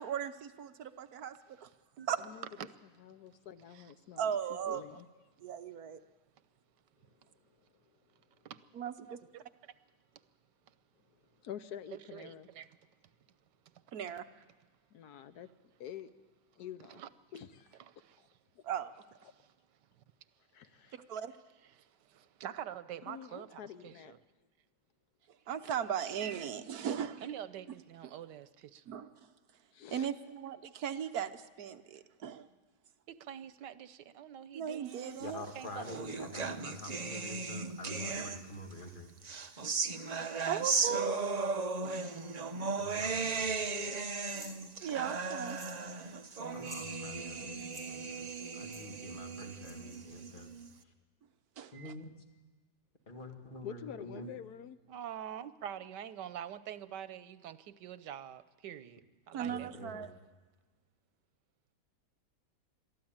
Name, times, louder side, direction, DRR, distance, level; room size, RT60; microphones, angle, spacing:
voice 1, 0.0-1.7 2.1-2.2 4.2-4.8 5.4-6.0 8.7-9.2 13.9-14.2 18.6-18.9 20.9-21.3 25.5-27.3 28.9-29.1 29.9-32.5 34.5-35.4 40.5-41.2 41.8-42.0 44.8-45.6 51.6-51.9 59.3-60.1, right 8 dB, 65° right, 1.3 m, -37 dB
voice 2, 3.0-5.1 11.4-12.5 14.9-15.5 15.8-16.1 16.6-17.0 17.3-17.8 18.6-18.7 20.5-21.0 23.1-24.1 29.7-30.1 53.6-54.8, left 9 dB, 70° left, 1.3 m, -47 dB
voice 3, 9.0-9.7 10.7-10.8 11.9-12.8 16.9-17.1 17.9-18.3 19.3-19.5 20.0-20.1 20.8-20.9 21.6-24.2 27.2-28.9 33.1-35.2 35.5-36.1 42.0-42.8 54.9-59.7, right 10 dB, 90° right, 1.4 m, -46 dB
voice 4, 35.2-39.1 42.8-43.5 46.5-47.6 47.8-48.2 48.5-50.5 51.7-52.1 53.1-54.3 59.4-60.1, left 1 dB, 30° left, 2.1 m, -46 dB
sound 1, 35.3-38.7 39.2-50.7, right 4 dB, 40° right, 0.6 m, -37 dB
sound 2, 44.3-44.6 45.4-45.8 46.1-46.2 46.5-46.9 47.6-47.9 48.7-48.8 49.6-50.0, equal, ahead, 5.0 m, -50 dB
22.5 x 14.0 x 8.8 m
omnidirectional pair, 1.8 m